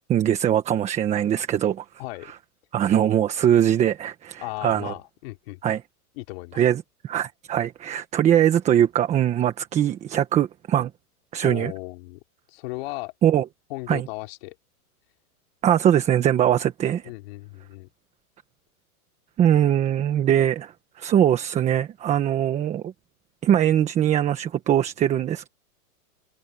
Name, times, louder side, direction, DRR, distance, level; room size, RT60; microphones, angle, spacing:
voice 1, 0.1-1.8 2.7-4.9 5.6-5.8 6.6-10.9 11.3-11.7 13.2-13.5 13.9-14.1 15.6-17.1 19.4-22.9 23.4-25.5, right 10 dB, 15° right, 1.3 m, -21 dB
voice 2, 2.0-2.3 4.4-5.6 6.2-6.6 11.4-12.2 12.5-13.1 13.7-14.6 17.0-17.9, left 22 dB, 40° left, 3.2 m, -35 dB
supercardioid pair, 160°, 45 cm